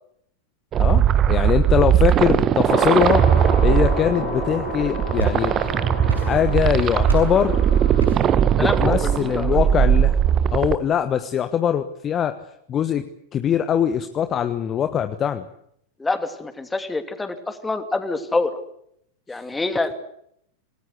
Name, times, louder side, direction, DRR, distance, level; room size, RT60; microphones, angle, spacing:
sound 1, 0.7-10.8, right 9 dB, 30° right, 1.4 m, -19 dB
voice 1, 0.8-3.3 3.6-5.5 6.2-7.6 8.6-10.2 10.5-12.4 12.7-13.1 13.3-15.4, left 9 dB, 30° left, 10 dB, 1.3 m, -22 dB
sound 2, 2.7-8.1, left 8 dB, 55° left, 2.3 m, -33 dB
sound 3, 4.8-5.7 6.1-6.7 7.1-7.4 8.0-8.4, right 4 dB, 80° right, 7.0 m, -30 dB
voice 2, 8.6-9.6 16.0-18.6 19.3-19.9, left 3 dB, 10° left, 9 dB, 2.8 m, -26 dB
27.5 x 19.5 x 8.2 m, 0.72 s
figure-of-eight pair, 90°, 0 cm